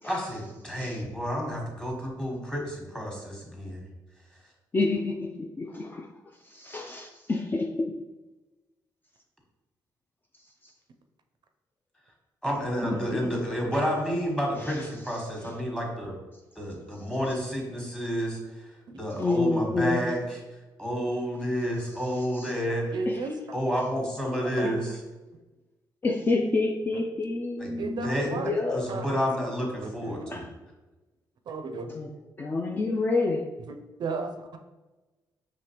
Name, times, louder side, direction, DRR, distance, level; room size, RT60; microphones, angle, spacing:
voice 1, 0.0-3.8 12.4-16.1 16.6-18.4 19.0-20.4 20.8-23.0 23.5-25.0 27.6-28.3 28.7-30.4, equal, 5° left, -1 dB, 1.3 m, -30 dB
voice 2, 0.6-1.0 4.7-6.1 6.4-8.0 10.6-10.7 12.8-13.4 14.6-15.6 19.2-20.1 21.8-22.6 23.1-23.4 24.6-24.8 26.0-28.9 30.2-30.5 31.9-32.1 32.4-33.6, left 3 dB, 25° left, 2 dB, 0.3 m, -29 dB
voice 3, 18.9-19.2 22.9-23.4 24.4-25.0 27.8-28.6 28.9-29.2 29.8-29.9 31.5-31.9 34.0-34.6, right 4 dB, 60° right, 6 dB, 0.4 m, -34 dB
4.9 x 3.0 x 2.9 m, 1.1 s
cardioid pair, 90°, 8 cm